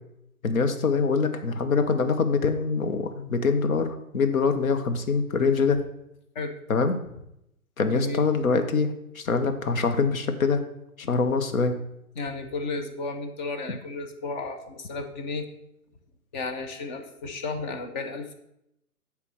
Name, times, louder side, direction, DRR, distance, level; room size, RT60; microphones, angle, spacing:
voice 1, 0.4-5.8 6.7-7.0 7.8-10.6 11.0-11.8, left 4 dB, 65° left, 8 dB, 1.0 m, -24 dB
voice 2, 7.9-8.2 12.1-15.4 16.3-18.3, left 3 dB, 30° left, 6 dB, 0.8 m, -33 dB
8.1 x 3.4 x 6.3 m, 0.82 s
figure-of-eight pair, 130°, 44 cm